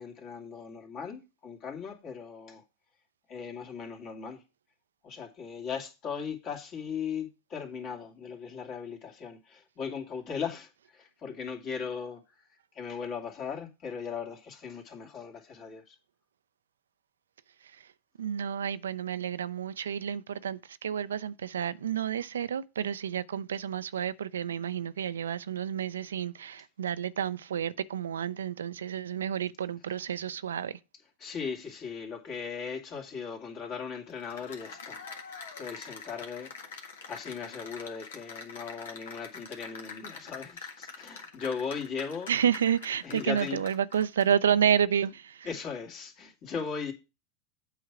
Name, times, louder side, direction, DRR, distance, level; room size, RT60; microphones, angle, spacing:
voice 1, 0.0-2.6 3.3-4.4 5.0-12.2 12.7-16.0 31.2-35.0 35.6-36.5 37.1-42.3 43.0-43.6 45.4-46.9, left 6 dB, 45° left, 2.4 m, -38 dB
voice 2, 18.2-30.8 42.3-45.5, right 9 dB, 85° right, 0.4 m, -30 dB
Cheering / Applause, 34.1-44.5, left 5 dB, 75° left, 1.6 m, -45 dB
8.1 x 4.7 x 6.0 m
hypercardioid pair, 100°, 0 cm